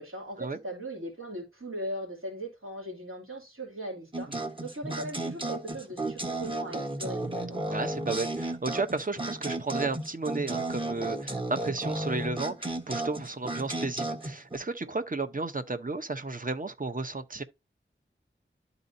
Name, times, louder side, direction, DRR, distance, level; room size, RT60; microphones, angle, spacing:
voice 1, 0.0-7.6, right 1 dB, 80° right, 2.6 m, -39 dB
sound 1, 4.1-14.6, right 2 dB, 25° right, 1.3 m, -34 dB
voice 2, 7.7-17.4, right 3 dB, 40° right, 0.8 m, -33 dB
12.0 x 4.1 x 2.7 m
wide cardioid pair, 40°, 21 cm